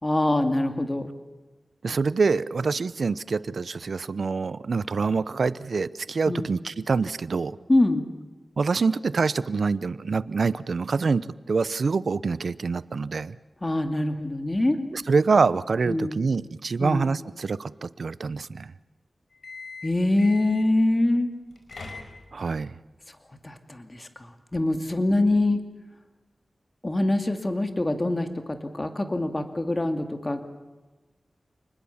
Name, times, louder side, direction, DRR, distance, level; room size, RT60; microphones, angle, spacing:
voice 1, 0.0-1.1 6.3-6.5 7.7-8.1 13.6-14.9 15.9-16.2 16.8-17.0 19.8-21.3 23.4-24.1 24.5-25.6 26.8-30.4, left 2 dB, 25° left, 7 dB, 2.4 m, -24 dB
voice 2, 1.8-7.6 8.6-13.4 14.9-18.7 22.3-22.7, right 4 dB, 75° right, 17 dB, 0.8 m, -25 dB
sound 1, 19.3-20.8 21.4-22.5, left 4 dB, 75° left, 5.1 m, -42 dB
29.0 x 20.5 x 7.2 m, 1.2 s
wide cardioid pair, 90°, 0 cm